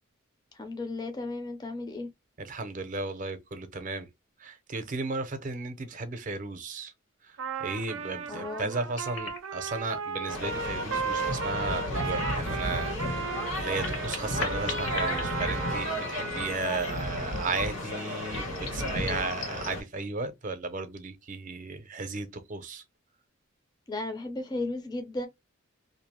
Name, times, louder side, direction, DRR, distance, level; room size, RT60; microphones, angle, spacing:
voice 1, 0.5-2.1 8.3-8.7 23.9-25.3, left 2 dB, 20° left, 0.4 m, -35 dB
voice 2, 2.4-4.1 4.4-6.9 7.2-22.8, right 3 dB, 40° right, 0.6 m, -35 dB
Trumpet, 7.4-15.9, right 5 dB, 85° right, 0.5 m, -35 dB
sound 1, 8.5-9.8 10.3-11.4 11.7-11.8 13.2-16.2 16.5-16.6 18.3-19.7, left 4 dB, 75° left, 0.8 m, -40 dB
sound 2, 10.3-19.8, left 1 dB, 90° left, 1.5 m, -33 dB
2.6 x 2.0 x 2.9 m
head